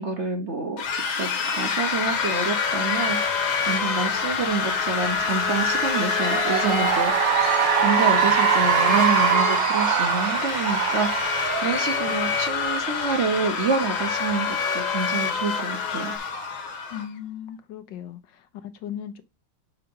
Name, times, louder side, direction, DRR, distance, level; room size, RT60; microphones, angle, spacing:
voice 1, 0.0-3.4 3.6-7.3 7.8-16.2, right 4 dB, 45° right, 1.1 m, -28 dB
sound 1, 0.8-17.1, left 6 dB, 90° left, 1.8 m, -28 dB
sound 2, 2.1-16.2, left 4 dB, 40° left, 0.6 m, -29 dB
Cheering / Applause, 6.1-12.8, right 12 dB, 70° right, 1.2 m, -23 dB
voice 2, 16.9-19.2, left 10 dB, 70° left, 1.3 m, -37 dB
5.7 x 4.9 x 5.4 m
omnidirectional pair, 2.2 m